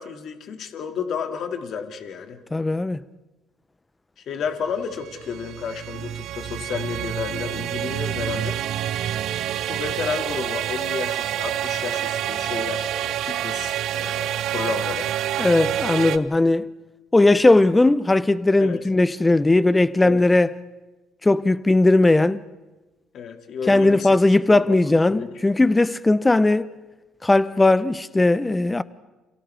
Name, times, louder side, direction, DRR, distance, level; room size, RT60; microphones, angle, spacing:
voice 1, 0.0-2.4 4.3-8.6 9.7-15.1 18.6-18.8 20.0-20.2 23.1-24.1 24.5-25.4, left 6 dB, 60° left, 2.3 m, -32 dB
voice 2, 2.5-3.0 15.4-16.7 17.1-20.5 21.2-22.4 23.7-26.7 27.2-28.8, left 2 dB, 15° left, 0.8 m, -18 dB
sound 1, 4.8-16.2, right 11 dB, 70° right, 0.8 m, -27 dB
29.5 x 28.0 x 3.5 m
hypercardioid pair, 65°, 0 cm